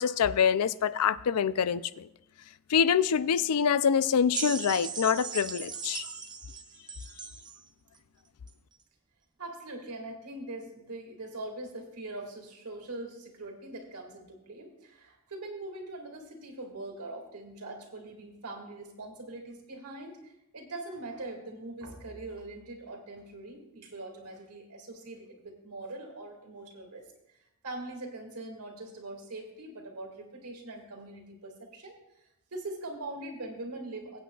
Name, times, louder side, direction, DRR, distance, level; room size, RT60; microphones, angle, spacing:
voice 1, 0.0-2.1 2.7-6.1, left 7 dB, 90° left, 0.4 m, -25 dB
sound 1, 4.3-7.6 8.5-8.6, right 6 dB, 20° right, 0.6 m, -38 dB
voice 2, 9.4-27.0 27.6-31.9 32.5-34.2, right 2 dB, 90° right, 2.2 m, -42 dB
22.0 x 8.6 x 2.3 m
head